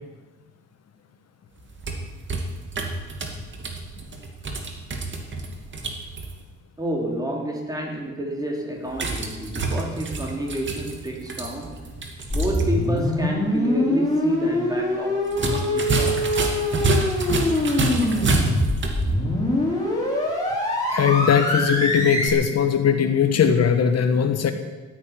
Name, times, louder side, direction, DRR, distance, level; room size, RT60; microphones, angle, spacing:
sound 1, 1.6-6.3 8.9-12.7 13.0-13.1 15.3-19.0, right 3 dB, 40° right, 2.4 m, -28 dB
voice 1, 6.8-11.9 12.3-16.2, right 1 dB, 10° right, 1 dB, 3.2 m, -29 dB
sound 2, 12.3-22.3, left 1 dB, 15° left, 5.2 m, -24 dB
voice 2, 20.9-24.5, left 7 dB, 60° left, 7 dB, 1.4 m, -19 dB
16.0 x 9.4 x 9.5 m, 1.2 s
cardioid pair, 140°, 30 cm